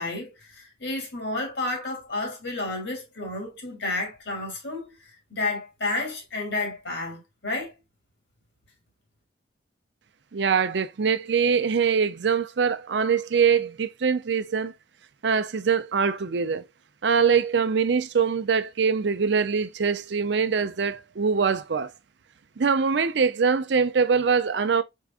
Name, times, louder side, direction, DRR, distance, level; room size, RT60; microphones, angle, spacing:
voice 1, 0.0-7.7, left 2 dB, 70° left, 2.6 m, -31 dB
voice 2, 10.3-14.7 15.2-16.6 17.0-21.9 22.6-24.8, right 6 dB, 65° right, 0.5 m, -23 dB
4.8 x 4.5 x 2.4 m
head